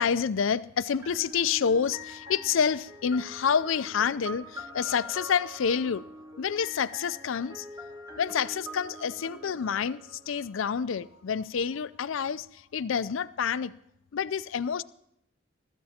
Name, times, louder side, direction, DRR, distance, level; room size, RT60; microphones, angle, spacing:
voice 1, 0.0-6.0 6.4-7.7 8.2-13.7 14.1-14.8, left 7 dB, 75° left, 0.4 m, -28 dB
sound 1, 1.0-10.8, left 1 dB, 20° right, 1.4 m, -44 dB
24.0 x 13.5 x 2.9 m
head